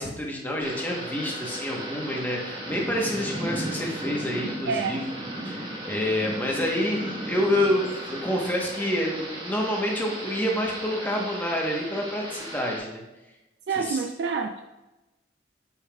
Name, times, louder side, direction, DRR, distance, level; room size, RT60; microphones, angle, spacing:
voice 1, 0.0-5.0 5.4-13.0 13.8-14.0, left 1 dB, 10° left, -1 dB, 1.0 m, -28 dB
Thunder / Rain, 0.6-12.8, right 1 dB, 25° right, 1.3 m, -35 dB
voice 2, 4.7-5.0 13.7-14.6, right 5 dB, 60° right, 5 dB, 0.4 m, -27 dB
8.9 x 5.5 x 2.3 m, 1.0 s
head